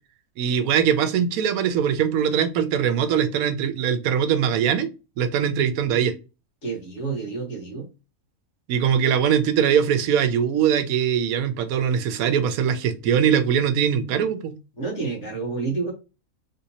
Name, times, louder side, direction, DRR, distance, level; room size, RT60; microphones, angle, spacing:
voice 1, 0.4-6.1 8.7-14.5, right 8 dB, 85° right, 1.0 m, -22 dB
voice 2, 6.6-7.9 14.7-15.9, right 4 dB, 55° left, 1.7 m, -29 dB
3.6 x 2.7 x 2.8 m
omnidirectional pair, 1.5 m